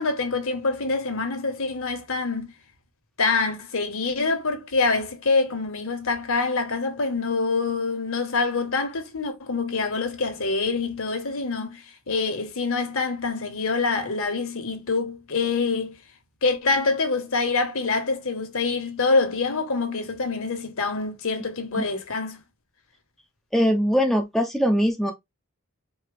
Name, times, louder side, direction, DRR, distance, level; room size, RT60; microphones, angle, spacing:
voice 1, 0.0-2.5 3.2-16.0 16.4-22.4, left 4 dB, 65° left, 1.5 m, -25 dB
voice 2, 23.5-25.1, equal, ahead, 0.7 m, -21 dB
4.7 x 2.8 x 3.5 m
head